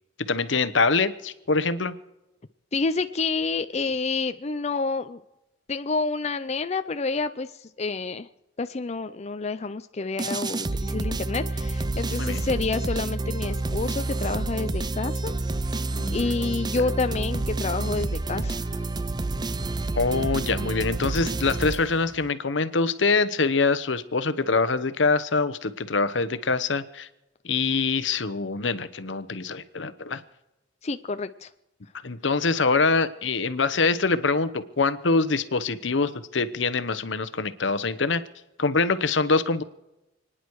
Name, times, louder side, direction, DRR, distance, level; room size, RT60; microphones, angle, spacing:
voice 1, 0.2-1.9 12.2-12.4 15.9-16.3 19.9-27.1 27.4-30.2 32.0-38.2 38.6-39.6, left 4 dB, 75° left, 13 dB, 1.0 m, -24 dB
voice 2, 2.7-5.2 5.7-8.3 8.6-15.4 16.1-18.9 30.8-31.5, left 3 dB, 35° left, 9 dB, 0.5 m, -29 dB
sound 1, 10.2-22.3, right 2 dB, 25° right, 0.5 m, -29 dB
29.0 x 10.0 x 4.7 m, 0.96 s
head